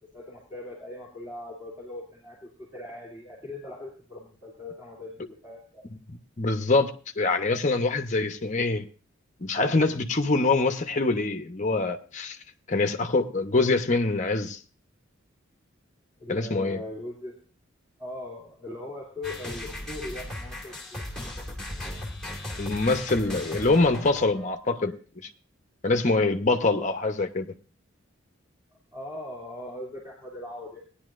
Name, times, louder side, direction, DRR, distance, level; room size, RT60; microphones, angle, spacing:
voice 1, 0.1-5.8 16.2-17.3 18.0-21.0 24.8-24.9 28.9-30.8, left 2 dB, 15° right, -6 dB, 2.5 m, -40 dB
voice 2, 6.4-6.9 7.2-8.9 9.4-12.4 12.7-14.6 16.3-16.8 22.6-24.9 25.8-27.4, left 3 dB, 35° left, 6 dB, 0.8 m, -24 dB
sound 1, 19.2-24.5, left 1 dB, 5° left, 2.1 m, -37 dB
18.5 x 10.0 x 2.5 m, 0.36 s
head